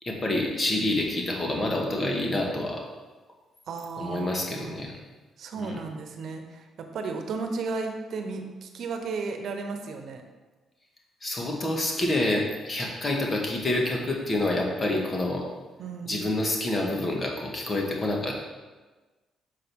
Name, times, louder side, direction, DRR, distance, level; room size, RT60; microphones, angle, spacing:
voice 1, 0.0-2.8 4.0-4.9 5.6-5.8 11.2-15.4 16.1-18.5, left 1 dB, 30° left, 0 dB, 1.8 m, -27 dB
voice 2, 3.7-4.8 5.4-10.2 15.8-16.3, right 4 dB, 65° right, 5 dB, 1.0 m, -34 dB
6.6 x 4.9 x 6.2 m, 1.3 s
cardioid pair, 90°, 0 cm